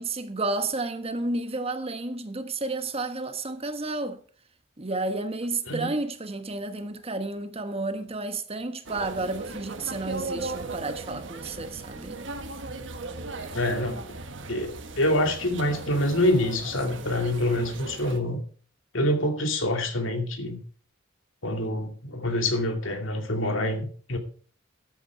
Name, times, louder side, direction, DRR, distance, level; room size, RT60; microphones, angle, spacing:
voice 1, 0.0-4.2 4.8-12.2, right 2 dB, 30° right, 1.2 m, -31 dB
sound 1, 8.8-18.2, right 3 dB, 70° right, 1.4 m, -37 dB
voice 2, 13.5-14.0 14.5-18.4 18.9-20.6 21.4-24.2, left 1 dB, 80° left, 2.4 m, -26 dB
13.5 x 8.5 x 4.6 m
head